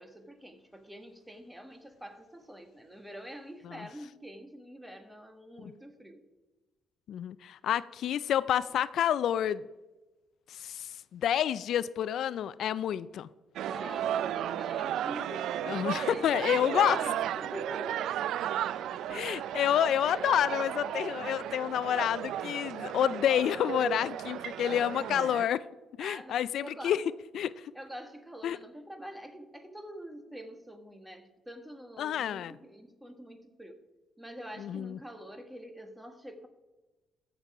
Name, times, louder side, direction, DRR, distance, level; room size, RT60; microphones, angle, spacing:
voice 1, 0.0-6.2 13.6-18.1 18.5-19.2 26.0-27.0 27.7-33.8 34.2-36.5, equal, 5° right, 7 dB, 1.5 m, -45 dB
voice 2, 7.1-9.6 10.5-13.3 15.7-17.0 19.1-25.6 26.0-27.0 27.3-27.7 28.4-28.6 32.0-32.6 34.6-35.0, left 10 dB, 70° left, 17 dB, 0.3 m, -29 dB
sound 1, 13.6-25.5, right 11 dB, 80° right, 0.3 m, -34 dB
14.0 x 6.8 x 4.8 m, 1.1 s
cardioid pair, 90°, 0 cm